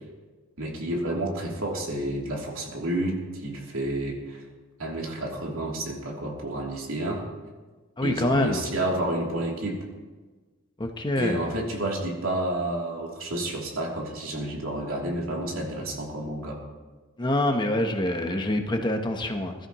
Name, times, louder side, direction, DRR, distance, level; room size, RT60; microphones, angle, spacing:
voice 1, 0.6-4.4 4.8-7.3 8.0-9.9 11.2-16.6, right 1 dB, 85° right, -2 dB, 3.1 m, -30 dB
voice 2, 8.0-8.6 10.8-11.6 17.2-19.5, left 1 dB, 20° left, 4 dB, 1.0 m, -26 dB
21.5 x 13.0 x 3.1 m, 1.3 s
head